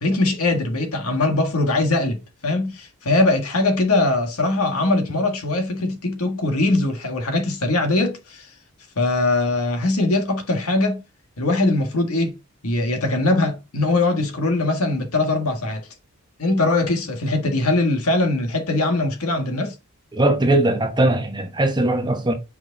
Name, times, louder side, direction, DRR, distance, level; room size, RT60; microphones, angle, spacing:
voice 1, 0.0-8.5 9.0-11.0 11.4-12.4 12.6-15.9 16.4-19.7, left 2 dB, 75° left, 1.6 m, -21 dB
voice 2, 20.1-22.3, right 1 dB, 20° right, 1.0 m, -19 dB
6.0 x 5.0 x 3.9 m
head